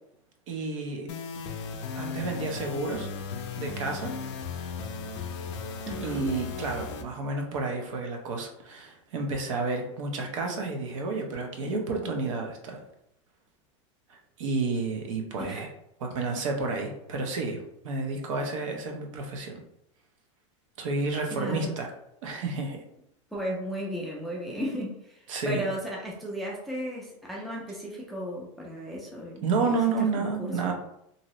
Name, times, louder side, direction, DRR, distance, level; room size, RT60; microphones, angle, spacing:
voice 1, 0.5-1.1 2.0-3.1 3.6-4.1 6.0-12.8 14.1-15.7 16.0-17.6 17.8-19.6 20.8-21.9 22.2-22.8 25.3-25.7 29.4-30.7, right 3 dB, 75° right, 2 dB, 0.7 m, -30 dB
sound 1, 1.1-7.0, left 5 dB, 60° left, 0.5 m, -36 dB
voice 2, 5.9-6.3 15.5-15.7 21.3-21.7 23.3-30.7, equal, ahead, -4 dB, 0.3 m, -35 dB
2.7 x 2.7 x 3.0 m, 0.77 s
supercardioid pair, 170°, 17 cm